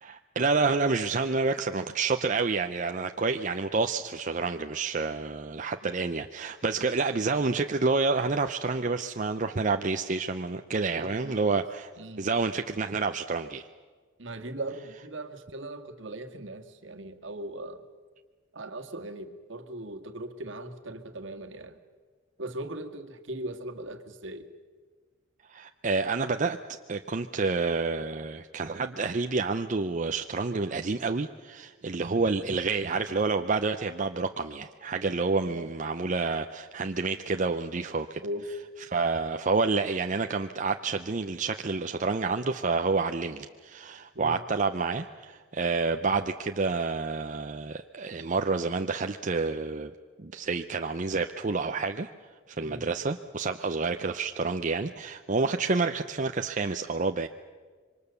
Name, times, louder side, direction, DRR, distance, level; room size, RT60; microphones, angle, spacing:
voice 1, 0.0-11.9 12.2-13.7 25.5-26.6 26.9-38.2 38.9-49.9 50.2-52.1 52.5-57.3, right 4 dB, 40° right, 6 dB, 0.6 m, -29 dB
voice 2, 10.9-11.6 12.0-12.3 14.2-17.8 18.5-21.8 22.4-24.5 35.4-35.7 38.2-38.5 44.1-44.4 52.6-52.9, right 1 dB, 65° right, 5 dB, 1.8 m, -39 dB
26.5 x 24.0 x 6.9 m, 1.5 s
head